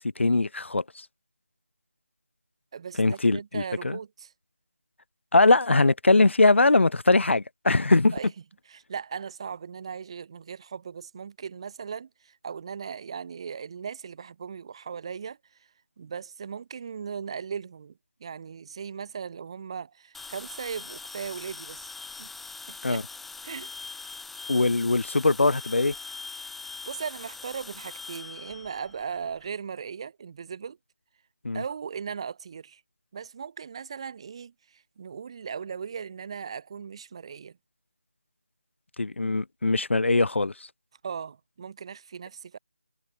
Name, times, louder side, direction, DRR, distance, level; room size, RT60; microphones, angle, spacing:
voice 1, 0.2-0.8 3.0-4.0 5.3-8.2 22.8-23.0 24.5-25.9 31.4-31.6 39.0-40.5, left 3 dB, 80° left, 0.7 m, -21 dB
voice 2, 2.7-4.3 8.1-8.3 8.7-15.4 16.0-17.9 18.2-21.9 22.2-22.3 22.7-23.0 23.4-23.7 26.8-30.8 31.5-32.8 33.1-37.6 41.0-42.6, right 6 dB, 25° right, 7.0 m, -38 dB
sound 1, 20.1-29.4, left 4 dB, ahead, 1.3 m, -42 dB
figure-of-eight pair, 170°, 6 cm